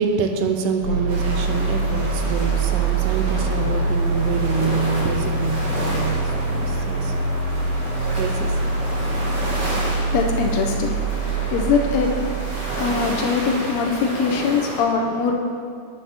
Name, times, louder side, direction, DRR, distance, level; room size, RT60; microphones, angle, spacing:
voice 1, 0.0-7.1 8.2-8.5, right 5 dB, 90° right, 6 dB, 2.2 m, -26 dB
sound 1, 0.8-13.9, right 3 dB, 70° right, 3.8 m, -24 dB
sound 2, 1.1-14.8, right 1 dB, 45° right, 1.5 m, -31 dB
voice 2, 8.9-15.3, left 5 dB, 75° left, 2 dB, 1.7 m, -23 dB
8.6 x 8.5 x 3.4 m, 2.2 s
omnidirectional pair, 3.7 m